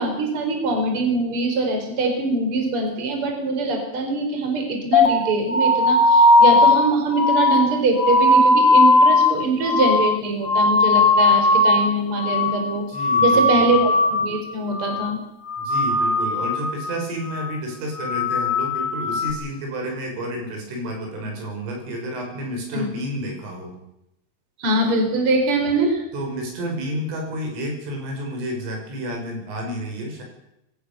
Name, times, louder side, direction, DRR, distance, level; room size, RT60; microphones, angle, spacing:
voice 1, 0.0-12.8 13.2-15.2 22.7-22.8 24.6-26.0, right 2 dB, 30° right, 3 dB, 5.0 m, -23 dB
sound 1, 4.9-11.9 12.2-12.7 12.9-14.4 14.7-15.1 15.4-16.9 17.2-17.6 17.9-19.3, left 2 dB, 90° left, 0.7 m, -18 dB
voice 2, 12.9-13.7 15.6-23.8 26.1-30.2, equal, 85° right, 2 dB, 8.5 m, -30 dB
24.0 x 16.5 x 7.0 m, 0.85 s
omnidirectional pair, 5.6 m